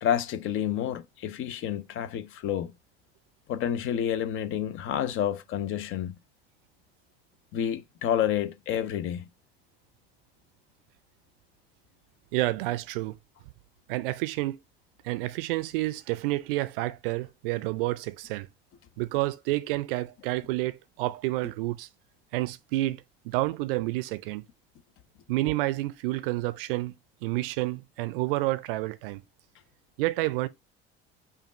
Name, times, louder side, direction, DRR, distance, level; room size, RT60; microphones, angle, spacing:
voice 1, 0.0-2.7 3.5-6.2 7.5-9.3, left 10 dB, 40° left, 0.6 m, -29 dB
voice 2, 12.3-13.2 13.9-14.6 15.0-18.5 19.0-21.9 22.3-24.4 25.3-26.9 27.2-29.2 30.0-30.5, right 19 dB, 60° right, 0.5 m, -29 dB
5.1 x 2.4 x 4.1 m
figure-of-eight pair, 60°, 31 cm